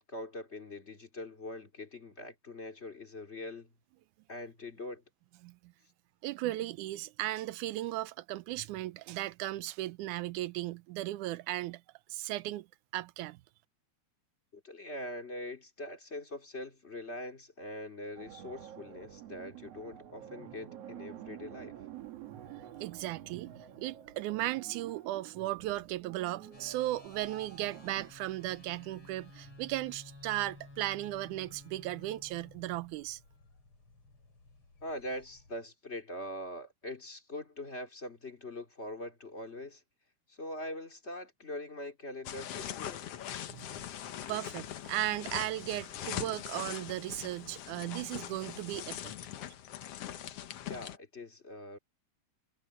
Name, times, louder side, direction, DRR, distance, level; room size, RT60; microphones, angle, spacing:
voice 1, 0.0-3.7 4.3-5.0 14.5-21.7 34.8-39.8 40.3-43.1 50.7-51.8, left 1 dB, 25° left, 2.4 m, -43 dB
voice 2, 6.2-11.8 12.1-12.7 12.9-13.4 22.8-33.2 43.5-43.7 44.3-49.1, right 16 dB, 90° right, 2.2 m, -36 dB
sound 1, 18.2-28.1, right 11 dB, 60° right, 2.4 m, -49 dB
sound 2, 26.5-35.6, left 2 dB, 40° left, 5.4 m, -55 dB
sound 3, 42.3-51.0, left 10 dB, 60° left, 1.9 m, -42 dB
omnidirectional pair, 3.5 m